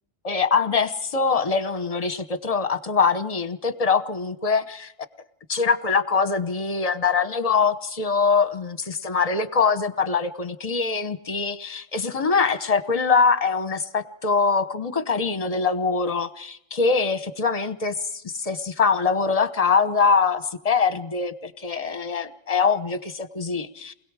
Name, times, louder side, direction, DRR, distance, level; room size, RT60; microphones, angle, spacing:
voice 1, 0.2-4.9 5.5-23.9, left 5 dB, 30° left, 10 dB, 1.1 m, -23 dB
29.0 x 21.0 x 4.8 m, 0.73 s
omnidirectional pair, 1.3 m